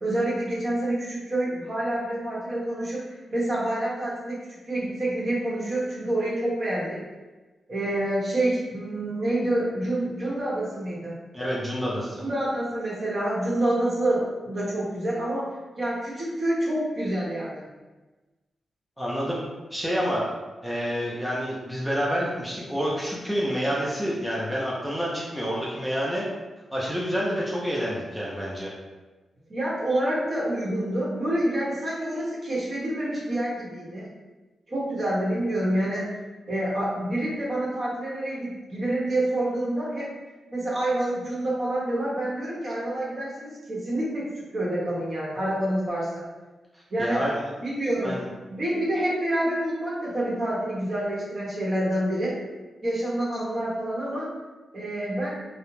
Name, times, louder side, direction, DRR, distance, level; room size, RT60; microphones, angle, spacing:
voice 1, 0.0-3.0 3.3-7.0 7.7-11.1 12.2-17.7 29.5-34.1 34.7-36.1 36.5-40.1 40.5-46.2 46.9-47.2 47.6-52.4 52.8-54.3 54.7-55.4, right 1 dB, 50° right, -6 dB, 0.9 m, -27 dB
voice 2, 11.3-12.2 19.0-19.4 19.7-20.3 20.6-26.3 26.7-28.7 46.7-47.5 48.0-48.2, equal, ahead, -6 dB, 0.6 m, -28 dB
2.3 x 2.0 x 3.1 m, 1.2 s
cardioid pair, 55°, 0 cm